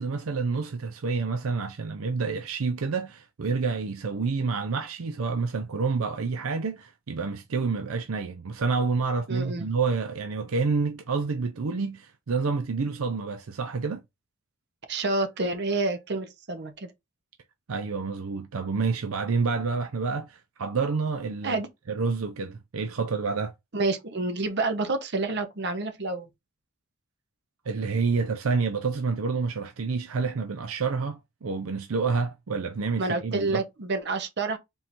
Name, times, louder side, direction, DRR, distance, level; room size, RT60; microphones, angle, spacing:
voice 1, 0.0-14.0 17.7-21.6 21.9-23.5 27.7-33.6, right 4 dB, 75° right, 0.5 m, -28 dB
voice 2, 9.3-9.7 14.9-16.9 21.4-21.7 23.7-26.3 33.0-34.6, right 3 dB, 55° right, 0.9 m, -28 dB
4.4 x 3.8 x 2.5 m
head